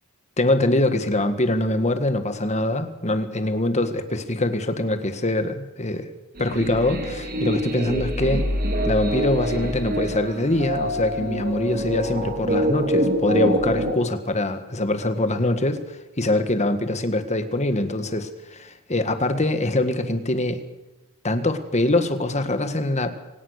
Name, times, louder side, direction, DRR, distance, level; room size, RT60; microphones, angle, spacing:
voice 1, 0.4-6.1 6.4-8.5 8.8-20.6 21.2-23.1, left 1 dB, 30° left, 9 dB, 1.6 m, -23 dB
sound 1, 6.4-13.9, equal, 45° right, 3.2 m, -25 dB
24.5 x 18.0 x 6.6 m, 1.0 s
head